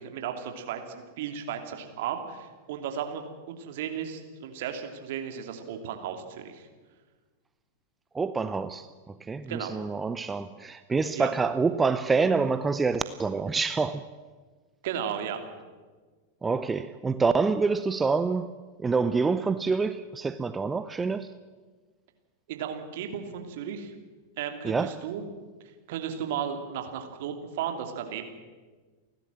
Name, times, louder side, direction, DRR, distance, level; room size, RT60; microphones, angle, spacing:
voice 1, 0.0-3.2 3.6-6.7 9.5-9.8 11.1-11.3 14.8-15.4 22.5-23.9 24.4-25.2 25.9-28.2, right 8 dB, 55° right, 5 dB, 2.7 m, -34 dB
voice 2, 8.1-8.9 9.3-14.0 16.4-18.5 18.8-21.3 24.6-24.9, right 4 dB, 15° right, 12 dB, 0.7 m, -26 dB
30.0 x 12.0 x 7.6 m, 1.4 s
figure-of-eight pair, 90°, 0 cm